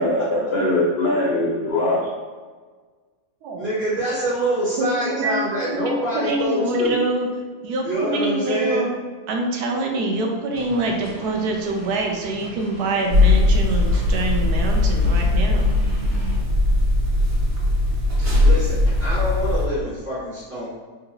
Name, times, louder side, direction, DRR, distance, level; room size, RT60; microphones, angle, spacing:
voice 1, 0.0-2.1, left 1 dB, 75° left, -4 dB, 0.5 m, -21 dB
voice 2, 3.6-7.0 7.8-8.9 18.4-20.7, right 1 dB, 45° right, -13 dB, 1.6 m, -25 dB
voice 3, 4.8-5.5 5.7-7.3 7.6-8.9 9.3-15.7, right 2 dB, 85° right, 1 dB, 1.1 m, -25 dB
sound 1, 10.5-16.4, right 1 dB, 30° left, 0.9 m, -37 dB
sound 2, 13.1-19.7, left 2 dB, 60° right, 1.8 m, -19 dB
3.9 x 2.5 x 2.6 m, 1.5 s
omnidirectional pair, 1.7 m